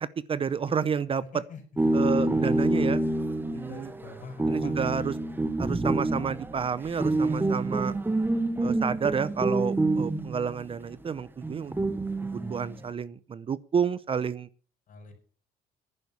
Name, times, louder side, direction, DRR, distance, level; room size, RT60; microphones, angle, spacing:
voice 1, 0.0-1.4 1.9-3.0 3.5-3.9 4.5-5.1 5.6-7.9 8.6-11.7 12.3-14.5, right 6 dB, 35° right, 17 dB, 0.7 m, -30 dB
sound 1, 1.8-10.7 11.4-12.8, right 2 dB, 10° right, 1.0 m, -27 dB
voice 2, 3.7-4.9 14.9-15.1, left 5 dB, 50° left, 7 dB, 5.3 m, -43 dB
11.0 x 9.3 x 7.0 m, 0.40 s
cardioid pair, 110°, 17 cm